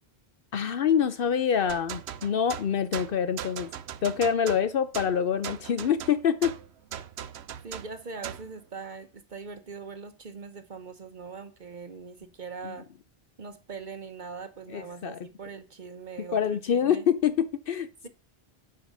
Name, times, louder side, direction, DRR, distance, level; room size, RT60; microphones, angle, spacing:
voice 1, 0.5-3.7 4.0-6.5 12.6-12.7 14.7-15.2 16.2-18.1, left 8 dB, 65° left, 0.8 m, -26 dB
sound 1, 1.7-8.5, right 10 dB, 80° right, 0.9 m, -39 dB
voice 2, 7.6-12.9 13.4-17.0, right 5 dB, 50° right, 0.9 m, -41 dB
9.6 x 4.8 x 6.0 m
omnidirectional pair, 1.1 m